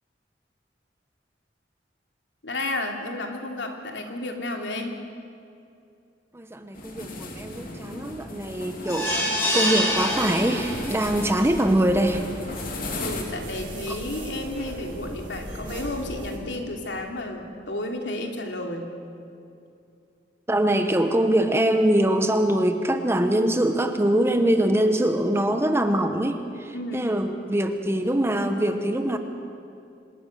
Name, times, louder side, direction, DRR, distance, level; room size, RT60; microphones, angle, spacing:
voice 1, 2.4-5.0 13.0-18.9 26.7-27.1, left 1 dB, 80° left, 2 dB, 2.9 m, -32 dB
voice 2, 6.3-9.2 9.5-12.3 20.5-29.2, right 1 dB, 15° right, 7 dB, 1.0 m, -23 dB
sound 1, 6.7-13.2, left 2 dB, 50° left, 3.0 m, -37 dB
sound 2, 8.8-11.1 11.6-11.7 12.0-12.1, equal, 15° left, 7.0 m, -26 dB
sound 3, 10.6-16.4, right 1 dB, 30° right, 7.7 m, -38 dB
25.5 x 19.5 x 6.6 m, 2.6 s
head